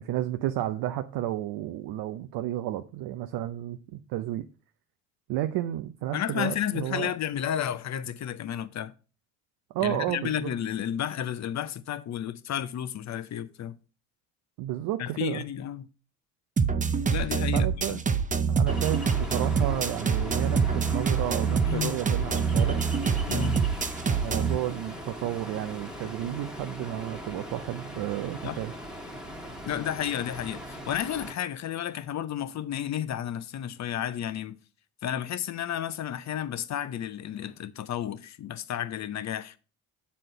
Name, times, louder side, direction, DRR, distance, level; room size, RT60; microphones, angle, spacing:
voice 1, 0.0-4.5 5.3-7.1 9.7-10.5 14.6-15.4 17.5-18.0 18.5-22.8 24.1-28.7, right 13 dB, 65° right, 0.7 m, -32 dB
voice 2, 6.1-8.9 9.8-13.8 15.0-15.9 17.1-18.0 21.7-22.0 23.3-23.6 28.4-28.6 29.7-34.5 35.0-39.6, left 10 dB, 40° left, 0.7 m, -32 dB
sound 1, 16.6-24.6, right 6 dB, 20° right, 0.6 m, -25 dB
Ocean, 18.7-31.3, equal, ahead, 1.5 m, -39 dB
7.5 x 4.2 x 5.4 m
hypercardioid pair, 65°, 42 cm